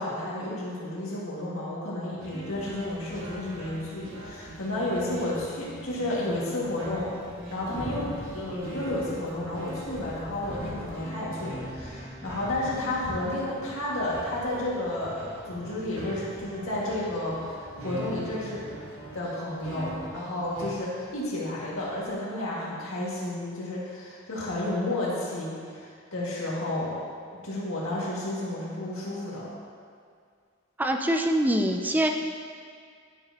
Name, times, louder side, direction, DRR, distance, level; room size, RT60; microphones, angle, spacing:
voice 1, 0.0-7.1 7.5-18.7 19.1-27.0 27.4-29.5, left 1 dB, 75° left, -6 dB, 2.0 m, -32 dB
sound 1, 2.2-20.7, right 1 dB, 65° right, 1.5 m, -42 dB
sound 2, 2.5-22.2, equal, 30° right, 1.8 m, -46 dB
voice 2, 30.8-32.1, right 1 dB, 10° right, 4 dB, 0.4 m, -24 dB
11.0 x 6.8 x 2.9 m, 2.1 s
head